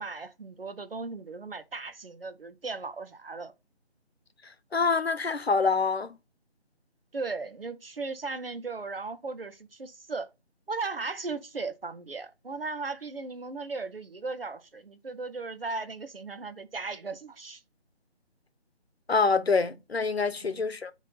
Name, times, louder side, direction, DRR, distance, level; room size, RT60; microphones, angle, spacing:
voice 1, 0.0-3.5 7.1-10.3 10.7-17.6 20.4-20.5, right 3 dB, 60° right, 1.0 m, -37 dB
voice 2, 4.7-6.2 19.1-20.9, left 4 dB, 65° left, 1.0 m, -26 dB
7.5 x 3.2 x 4.0 m
figure-of-eight pair, 160°, 33 cm